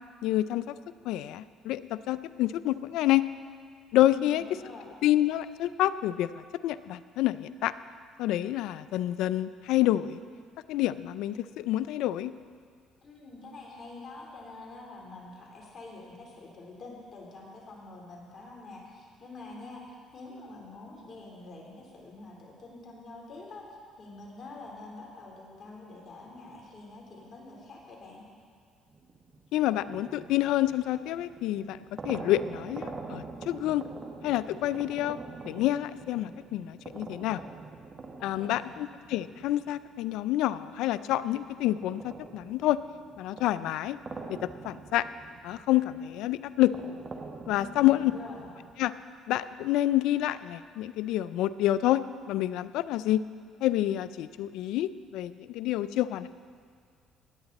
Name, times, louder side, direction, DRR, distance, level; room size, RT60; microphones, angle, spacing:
voice 1, 0.2-0.6 1.1-3.2 3.9-4.4 5.0-7.7 8.2-10.2 10.7-12.3 29.5-31.8 32.0-33.8 34.2-35.2 35.4-37.4 38.2-42.8 43.2-44.0 44.3-45.1 45.4-46.7 47.5-48.1 48.8-48.9 49.3-53.2 53.6-56.3, left 14 dB, 80° left, 15 dB, 0.4 m, -28 dB
voice 2, 4.0-4.9 13.0-28.2 38.3-38.8 47.5-48.5, left 2 dB, 45° left, -2 dB, 3.7 m, -46 dB
sound 1, 28.9-40.6 41.1-48.8, right 4 dB, 35° right, 1.2 m, -45 dB
18.0 x 8.9 x 4.1 m, 2.1 s
supercardioid pair, 75°, 0 cm